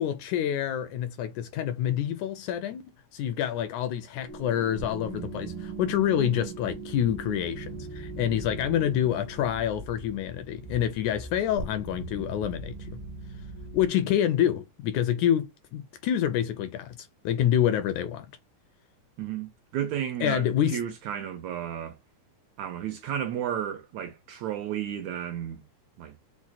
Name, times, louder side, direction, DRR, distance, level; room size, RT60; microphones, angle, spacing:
voice 1, 0.0-2.8 3.1-13.0 13.7-18.3 20.2-20.8, left 10 dB, 80° left, 1.8 m, -27 dB
sound 1, 4.3-13.9, right 4 dB, 60° right, 1.5 m, -40 dB
voice 2, 19.2-22.0 22.6-25.6 26.0-26.1, right 10 dB, 75° right, 1.8 m, -33 dB
5.9 x 2.1 x 3.9 m
omnidirectional pair, 3.7 m